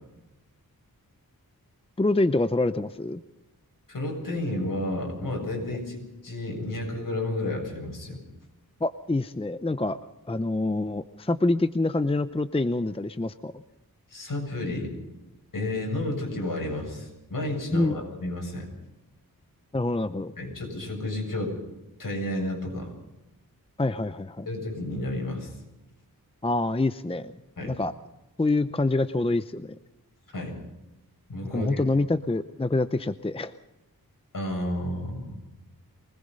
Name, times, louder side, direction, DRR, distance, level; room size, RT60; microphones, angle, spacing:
voice 1, 2.0-3.2 8.8-10.0 10.3-13.5 17.7-18.0 19.7-20.3 23.8-24.5 26.4-27.3 27.6-27.9 28.4-29.8 31.4-33.5, left 2 dB, 15° left, 11 dB, 0.7 m, -26 dB
voice 2, 3.9-8.2 14.1-14.9 15.5-18.7 20.4-21.5 22.0-22.9 24.5-25.5 27.6-27.7 30.3-30.5 31.3-31.9 34.3-35.4, left 1 dB, 60° left, 1 dB, 7.6 m, -31 dB
23.5 x 20.5 x 5.5 m, 0.99 s
wide cardioid pair, 105°, 36 cm